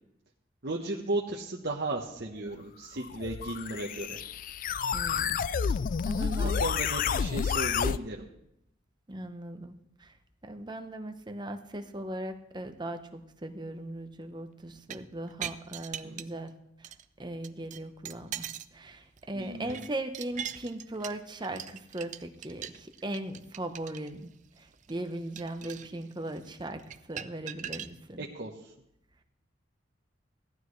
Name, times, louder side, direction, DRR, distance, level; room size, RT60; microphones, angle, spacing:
voice 1, 0.6-4.2 6.2-8.2 16.0-16.2 19.3-19.8 28.2-28.7, right 2 dB, 55° right, -2 dB, 1.0 m, -35 dB
sound 1, 3.0-8.0, left 7 dB, 45° left, 0.3 m, -30 dB
voice 2, 4.9-5.4 5.7-5.8 6.0-6.6 9.1-9.7 10.0-10.1 10.4-16.5 16.8-16.9 17.2-18.5 18.7-28.2, right 1 dB, 25° right, 7 dB, 0.9 m, -38 dB
sound 2, 14.7-16.5 16.8-17.0 17.4-18.7 19.1-27.9, right 9 dB, 40° right, 0.4 m, -42 dB
17.0 x 12.0 x 3.2 m, 0.80 s
head